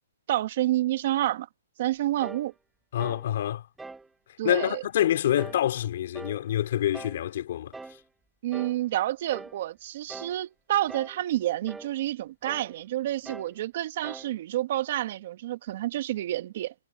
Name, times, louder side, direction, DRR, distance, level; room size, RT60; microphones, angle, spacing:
voice 1, 0.3-1.5 1.8-2.5 4.4-4.8 8.4-16.7, right 14 dB, 45° right, 1.3 m, -29 dB
sound 1, 2.2-2.5 3.0-3.3 3.8-4.1 4.6-4.9 5.4-5.7 6.1-6.5 6.9-7.2 7.7-8.0 8.5-8.8 9.3-9.6 10.1-10.4 10.9-11.2 11.7-11.9 12.5-12.7 13.3-13.6 14.0-14.3, right 3 dB, 5° right, 1.0 m, -42 dB
voice 2, 2.9-3.6 4.4-7.7, left 11 dB, 55° left, 2.8 m, -26 dB
hypercardioid pair, 155°, 0 cm